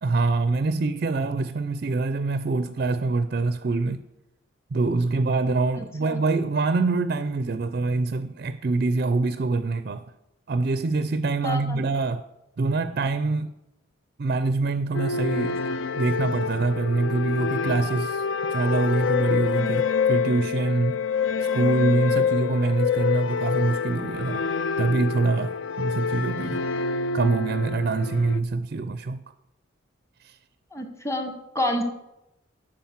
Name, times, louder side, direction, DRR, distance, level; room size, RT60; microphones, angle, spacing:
voice 1, 0.0-4.0 4.7-10.1 10.5-12.2 12.6-13.5 14.2-15.6 15.9-21.0 21.4-24.5 24.8-26.6 27.1-29.2 30.2-30.4, right 3 dB, 45° right, 0.4 m, -25 dB
voice 2, 5.7-6.2 11.4-11.8 30.7-31.8, left 1 dB, 15° left, 1.2 m, -29 dB
sound 1, 14.9-28.4, left 6 dB, 65° left, 0.5 m, -27 dB
11.5 x 4.9 x 7.3 m
head